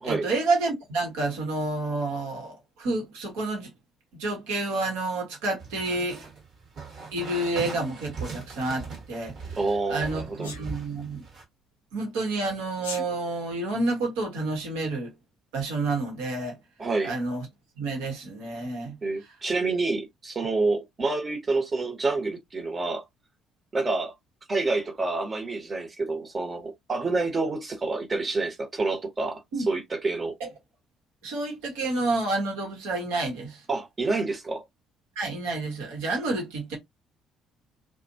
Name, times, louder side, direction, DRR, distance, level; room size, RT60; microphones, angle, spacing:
voice 1, 0.0-3.7 4.2-6.2 7.1-9.6 9.9-11.2 11.9-15.1 15.5-16.6 17.0-17.5 17.8-19.0 29.5-29.7 30.4-30.5 31.2-33.6 35.1-36.8, right 2 dB, 70° right, 1.2 m, -29 dB
sound 1, 5.6-11.4, right 5 dB, 55° right, 1.4 m, -40 dB
voice 2, 9.6-10.5 16.8-17.1 19.0-23.0 23.7-24.1 24.5-29.4 29.7-30.3 33.7-34.6, right 3 dB, 30° right, 1.1 m, -28 dB
Sneeze, 10.4-10.6 12.7-13.1, left 4 dB, 85° left, 0.5 m, -36 dB
2.5 x 2.3 x 2.7 m
figure-of-eight pair, 50°, 0 cm